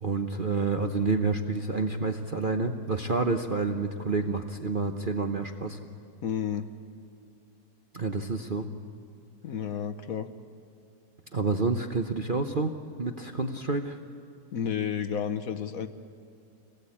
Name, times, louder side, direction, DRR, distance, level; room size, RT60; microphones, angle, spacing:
voice 1, 0.0-5.8 7.9-8.7 11.3-12.7 13.0-14.0, right 3 dB, 40° right, 5 dB, 0.8 m, -28 dB
voice 2, 6.2-6.7 9.4-10.3 14.5-15.9, left 8 dB, 60° left, 10 dB, 1.2 m, -31 dB
25.5 x 18.5 x 8.6 m, 2.5 s
omnidirectional pair, 1.9 m